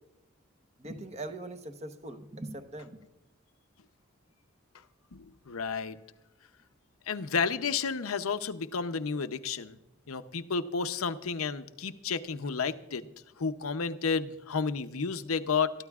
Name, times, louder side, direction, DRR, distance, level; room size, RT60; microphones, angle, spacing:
voice 1, 0.8-3.0, right 2 dB, 30° right, 8 dB, 1.0 m, -41 dB
voice 2, 5.1-6.0 7.1-9.8 10.1-13.0 13.4-15.7, left 5 dB, 90° left, 10 dB, 0.7 m, -31 dB
22.0 x 13.0 x 2.4 m, 0.96 s
head